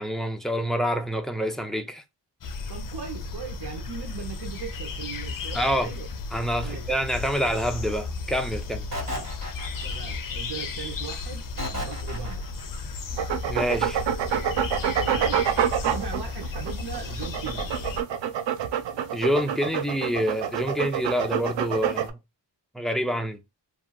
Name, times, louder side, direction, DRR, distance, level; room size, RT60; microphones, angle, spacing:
voice 1, 0.0-2.0 5.5-5.9 6.3-8.9 13.5-14.0 19.1-22.2 22.7-23.4, equal, ahead, 0.5 m, -27 dB
sound 1, 2.4-18.0, left 4 dB, 50° left, 0.5 m, -34 dB
voice 2, 2.7-6.1 6.6-6.9 9.1-9.3 9.8-11.5 11.7-12.5 15.0-15.4 15.9-17.7, right 7 dB, 65° right, 0.9 m, -38 dB
sound 2, 8.9-10.2 11.6-12.7, left 1 dB, 40° right, 1.6 m, -34 dB
sound 3, 13.2-22.1, right 9 dB, 90° right, 0.5 m, -27 dB
2.8 x 2.6 x 2.2 m
wide cardioid pair, 95°, 42 cm